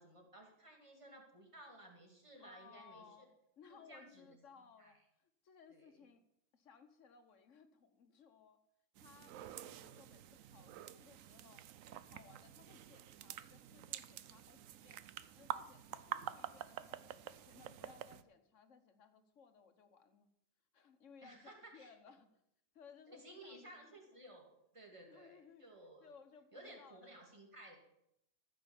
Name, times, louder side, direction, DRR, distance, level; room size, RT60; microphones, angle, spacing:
voice 1, 0.0-3.0 3.7-4.4 4.8-4.9 5.7-5.9 21.2-21.9 23.1-26.1 26.5-27.8, right 1 dB, 25° right, 0 dB, 2.3 m, -57 dB
voice 2, 2.4-3.3 3.6-6.2 6.5-8.6 9.0-11.6 11.9-15.0 15.4-17.1 17.4-20.3 20.7-22.4 22.7-23.9 24.8-25.7 26.0-27.1, left 5 dB, 70° left, 8 dB, 1.4 m, -62 dB
sound 1, 9.0-18.2, right 11 dB, 90° right, 1.0 m, -48 dB
14.0 x 6.2 x 7.2 m, 0.81 s
omnidirectional pair, 1.3 m